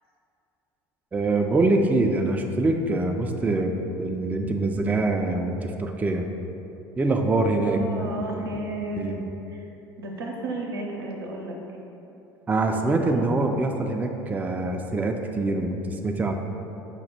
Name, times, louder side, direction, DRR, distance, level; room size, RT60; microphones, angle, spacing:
voice 1, 1.1-3.7 4.0-6.3 7.0-8.4 9.0-9.3 12.5-16.3, right 2 dB, 15° right, 3 dB, 0.3 m, -24 dB
voice 2, 7.6-9.7 10.0-11.6 12.7-13.3, right 2 dB, 85° right, -1 dB, 0.6 m, -33 dB
5.1 x 2.1 x 4.2 m, 2.9 s
hypercardioid pair, 70°, 12 cm